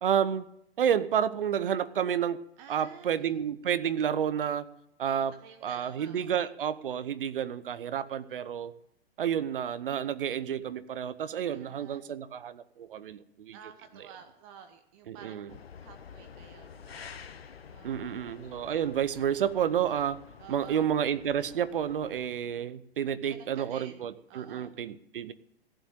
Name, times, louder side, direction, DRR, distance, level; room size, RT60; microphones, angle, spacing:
voice 1, 0.0-0.4 0.8-2.4 2.7-4.7 5.0-5.3 5.6-8.7 9.2-13.6 15.1-15.5 17.8-20.2 20.5-25.3, right 9 dB, 60° right, 15 dB, 0.9 m, -30 dB
voice 2, 2.6-3.3 5.0-6.5 11.4-12.0 13.5-15.4 15.8-17.1 17.7-18.2 20.4-20.9 23.3-24.0 24.3-24.7, right 7 dB, 30° right, 7 dB, 1.0 m, -51 dB
sound 1, 15.5-22.3, left 7 dB, 75° left, 0.9 m, -49 dB
15.5 x 7.7 x 7.7 m, 0.78 s
figure-of-eight pair, 110°, 31 cm